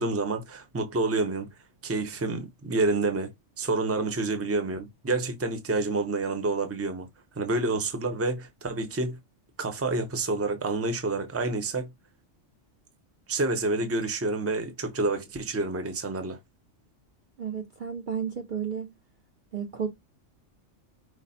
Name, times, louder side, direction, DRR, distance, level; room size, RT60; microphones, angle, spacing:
voice 1, 0.0-1.5 1.8-3.3 3.6-7.1 7.4-9.2 9.6-11.9 13.3-16.4, right 3 dB, 15° right, 0.7 m, -28 dB
voice 2, 17.4-18.9 19.5-19.9, right 7 dB, 50° right, 0.7 m, -32 dB
5.0 x 2.1 x 4.1 m
omnidirectional pair, 1.3 m